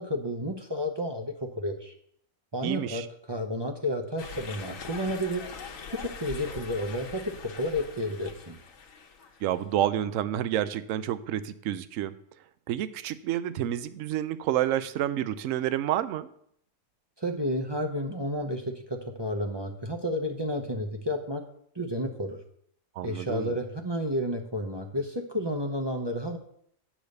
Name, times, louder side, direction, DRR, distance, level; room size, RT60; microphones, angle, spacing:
voice 1, 0.0-1.9 2.5-3.0 3.3-5.4 5.9-8.6 17.2-21.4 21.7-22.4 23.0-26.4, equal, 25° right, 3 dB, 0.6 m, -31 dB
voice 2, 2.6-3.1 9.4-12.1 12.7-16.3 23.0-23.5, right 11 dB, 70° right, 14 dB, 0.9 m, -29 dB
sound 1, 4.2-9.6, left 5 dB, 70° left, 1.3 m, -42 dB
8.8 x 5.1 x 6.6 m, 0.68 s
omnidirectional pair, 1.5 m